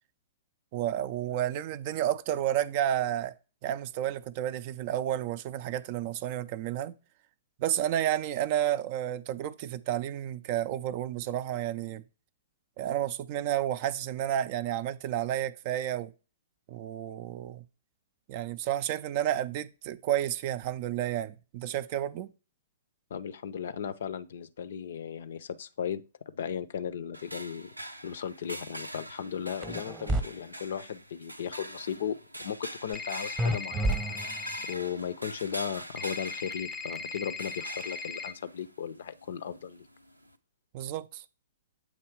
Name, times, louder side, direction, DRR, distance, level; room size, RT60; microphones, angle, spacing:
voice 1, 0.7-3.3 3.6-6.9 7.6-12.0 12.8-16.1 16.7-17.6 18.3-22.3 40.7-41.2, right 11 dB, 40° right, 0.4 m, -31 dB
voice 2, 23.1-27.7 28.0-34.4 34.6-39.9, left 8 dB, 55° left, 0.5 m, -36 dB
sound 1, 27.1-40.4, right 1 dB, 90° right, 0.5 m, -45 dB
sound 2, 29.6-30.2 33.4-34.6, right 1 dB, 15° right, 0.9 m, -29 dB
sound 3, 32.9-34.7 36.0-38.3, left 4 dB, 5° left, 0.6 m, -39 dB
8.0 x 3.1 x 4.5 m
figure-of-eight pair, 110°, 0 cm